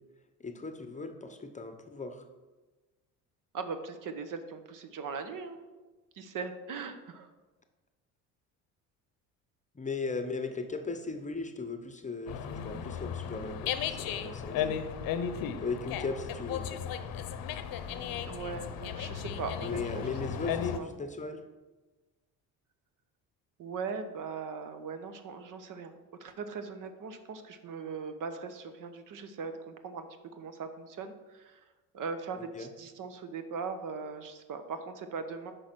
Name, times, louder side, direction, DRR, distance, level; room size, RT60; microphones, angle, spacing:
voice 1, 0.4-2.3 9.7-14.8 15.6-16.8 19.6-21.4 32.5-32.7, left 4 dB, 20° left, 7 dB, 0.8 m, -37 dB
voice 2, 3.5-5.6 6.1-7.3 18.3-20.0 20.7-20.9 23.6-25.9 26.2-30.1 30.3-31.6 31.9-35.5, right 5 dB, 55° right, 9 dB, 0.9 m, -39 dB
Dog, 12.3-20.8, left 8 dB, 65° left, 0.7 m, -35 dB
6.4 x 5.1 x 6.1 m, 1.2 s
supercardioid pair, 85°, 38 cm